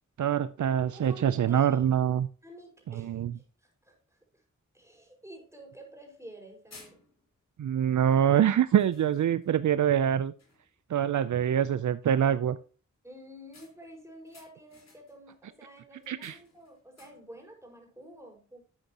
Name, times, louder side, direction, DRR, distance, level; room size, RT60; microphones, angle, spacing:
voice 1, 0.2-2.3 2.9-3.3 7.6-10.3 10.9-12.6 16.1-16.3, right 9 dB, 75° right, 15 dB, 0.5 m, -25 dB
voice 2, 0.9-1.9 2.4-4.0 4.7-7.0 13.0-18.6, right 1 dB, 10° right, 1 dB, 5.2 m, -50 dB
sound 1, 5.4-5.5 6.2-6.4 6.7-7.4 8.1-8.3 8.8-9.6 10.0-10.1 10.4-10.8 13.5-15.3 16.0-17.4, left 3 dB, 60° left, 4.2 m, -57 dB
12.0 x 8.0 x 2.9 m, 0.36 s
cardioid pair, 50°, 30 cm